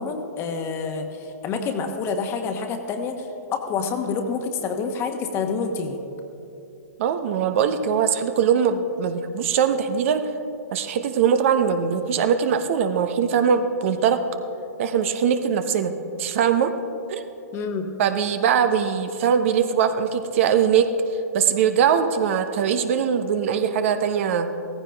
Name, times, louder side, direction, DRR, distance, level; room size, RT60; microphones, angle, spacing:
voice 1, 0.0-6.0 17.5-17.9, left 5 dB, 25° left, 5 dB, 1.2 m, -28 dB
voice 2, 7.0-10.3 10.7-14.2 14.8-15.9 16.2-16.7 17.1-17.3 18.0-20.9 21.3-24.5, right 7 dB, 50° right, 8 dB, 0.9 m, -21 dB
16.5 x 15.0 x 3.5 m, 2.9 s
hypercardioid pair, 120°, 9 cm